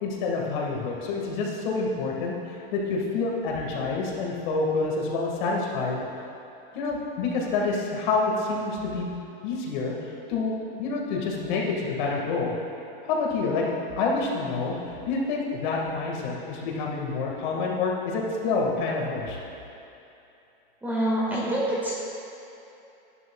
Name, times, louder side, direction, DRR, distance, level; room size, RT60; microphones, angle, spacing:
voice 1, 0.0-6.0 6.7-9.1 9.4-12.5 13.0-13.6 14.0-19.4, left 3 dB, 50° left, -2 dB, 1.7 m, -28 dB
voice 2, 20.8-22.0, right 1 dB, 5° right, -6 dB, 1.7 m, -26 dB
13.0 x 11.0 x 2.3 m, 2.8 s
supercardioid pair, 155°, 29 cm